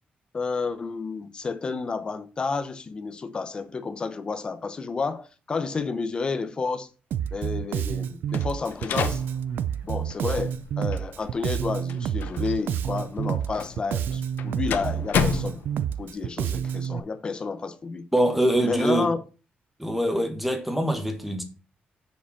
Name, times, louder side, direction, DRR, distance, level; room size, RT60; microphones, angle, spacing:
voice 1, 0.3-6.9 7.3-9.2 9.8-15.6 16.0-18.1 18.6-19.2, left 4 dB, 25° left, 0.7 m, -30 dB
Bass guitar, 7.1-17.0, right 9 dB, 70° right, 0.5 m, -29 dB
sound 1, 8.3-16.1, left 7 dB, 70° left, 0.9 m, -33 dB
voice 2, 18.1-19.1 19.8-21.4, right 1 dB, 5° right, 1.2 m, -24 dB
6.9 x 5.0 x 5.8 m
wide cardioid pair, 175°, 4 cm